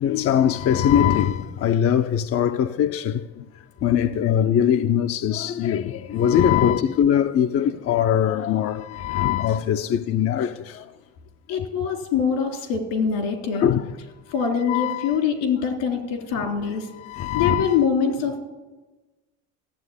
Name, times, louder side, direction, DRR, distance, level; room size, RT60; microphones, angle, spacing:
voice 1, 0.0-3.2 3.8-10.5 13.5-13.8 14.7-15.2 17.1-17.8, left 9 dB, 40° left, 0.6 m, -21 dB
voice 2, 11.5-13.7 14.3-16.9 17.3-18.4, left 6 dB, 80° left, 3.4 m, -24 dB
15.0 x 7.7 x 9.9 m
supercardioid pair, 110°, 35 cm